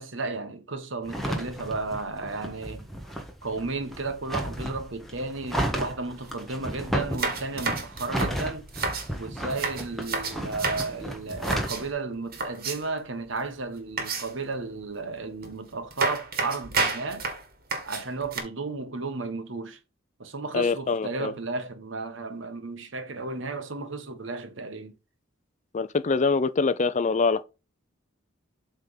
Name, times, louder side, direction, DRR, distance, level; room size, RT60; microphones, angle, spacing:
voice 1, 0.0-2.9 3.4-8.7 9.2-17.2 17.9-19.8 20.2-24.9, right 3 dB, 65° right, 1.2 m, -33 dB
sound 1, 1.1-11.9, equal, ahead, 1.3 m, -33 dB
sound 2, 6.2-6.3 6.6-6.7 7.1-9.1 9.5-10.9 11.3-11.9 12.3-13.0 14.0-14.5 15.4-15.5 15.9-18.4, right 4 dB, 50° right, 1.8 m, -30 dB
voice 2, 20.5-21.3 25.7-27.4, left 4 dB, 35° left, 0.5 m, -24 dB
7.9 x 3.5 x 5.6 m
head